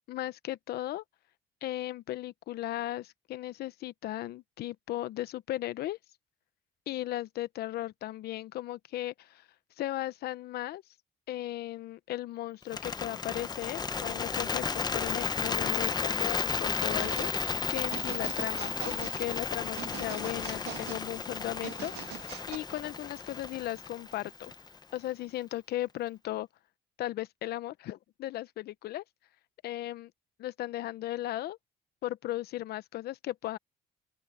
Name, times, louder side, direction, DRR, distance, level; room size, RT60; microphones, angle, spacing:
voice 1, 0.1-1.0 1.6-6.0 6.9-9.5 9.8-10.8 11.3-24.5 24.9-26.5 27.0-29.0 29.6-30.1 30.4-31.6 32.0-33.6, left 15 dB, 70° left, 0.9 m, -36 dB
Bird, 12.6-24.8, left 5 dB, 25° left, 1.0 m, -33 dB
sound 1, 17.0-17.3 17.9-19.2 19.8-21.0 21.6-22.6, right 14 dB, 80° right, 2.3 m, -43 dB
open air
cardioid pair, 110°, 17 cm